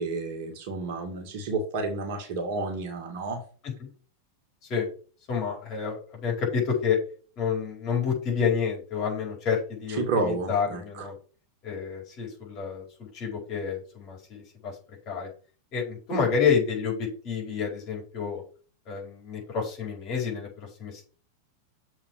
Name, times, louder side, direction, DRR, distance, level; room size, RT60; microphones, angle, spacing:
voice 1, 0.0-3.4 10.0-11.1, right 3 dB, 50° right, 4 dB, 2.1 m, -30 dB
voice 2, 5.3-7.0 7.4-11.1 11.6-14.7 15.1-15.3 15.7-18.4 18.9-21.0, left 6 dB, 35° left, -1 dB, 4.9 m, -29 dB
7.3 x 4.4 x 6.6 m, 0.40 s
figure-of-eight pair, 90°, 0 cm